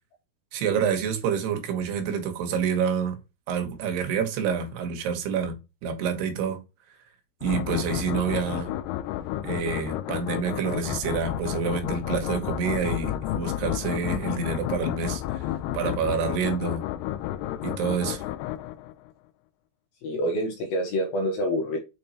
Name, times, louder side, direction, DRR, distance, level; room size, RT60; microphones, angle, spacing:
voice 1, 0.5-3.2 3.5-5.6 5.8-6.6 7.4-8.7 9.4-15.5 15.7-16.8 17.6-18.2, right 6 dB, 85° right, 3.4 m, -28 dB
sound 1, 7.4-19.1, left 13 dB, 85° left, 2.6 m, -31 dB
voice 2, 20.0-21.8, equal, 70° left, 2.9 m, -27 dB
6.4 x 5.3 x 2.9 m
omnidirectional pair, 4.6 m